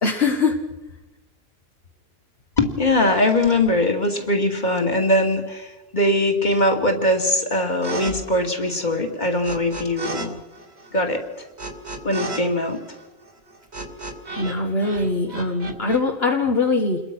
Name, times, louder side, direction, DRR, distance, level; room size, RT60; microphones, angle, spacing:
voice 1, 0.0-0.6 14.4-17.0, left 3 dB, 65° left, 1 dB, 1.8 m, -22 dB
voice 2, 2.6-10.4 10.9-11.2 12.0-12.8, left 1 dB, 45° left, 3 dB, 2.8 m, -21 dB
sound 1, 7.8-8.1 8.4-10.3 10.5-14.5 14.8-16.0, right 3 dB, 85° right, 2.9 m, -33 dB
28.0 x 21.5 x 6.2 m, 1.1 s
omnidirectional pair, 1.1 m